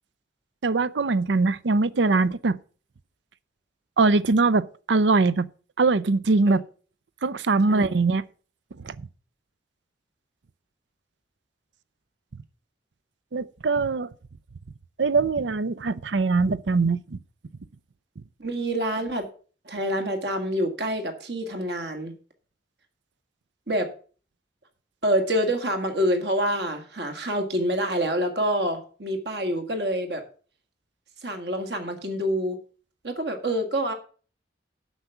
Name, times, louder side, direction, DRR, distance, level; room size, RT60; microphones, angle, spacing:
voice 1, 0.6-2.6 4.0-5.5 5.8-6.6 7.2-8.2 8.8-9.1 13.3-14.1 15.0-17.2, right 3 dB, 80° right, 0.6 m, -22 dB
voice 2, 7.7-8.0 18.4-19.3 19.7-22.1 23.7-23.9 25.0-30.2 31.2-32.6 33.0-33.9, equal, 65° right, 1.9 m, -27 dB
8.1 x 6.0 x 7.9 m
head